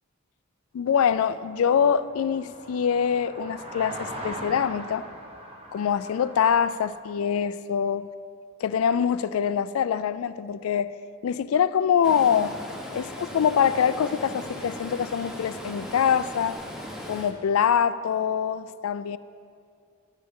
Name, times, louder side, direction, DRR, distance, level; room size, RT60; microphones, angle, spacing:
voice 1, 0.7-5.0 5.7-8.1 8.6-10.9 11.2-12.5 12.9-16.6 17.1-19.2, left 7 dB, 80° left, 0.3 m, -24 dB
sound 1, 1.1-7.0, right 1 dB, 30° right, 1.1 m, -41 dB
Stream, 12.0-17.3, left 1 dB, 5° right, 1.0 m, -38 dB
12.0 x 10.5 x 3.7 m
head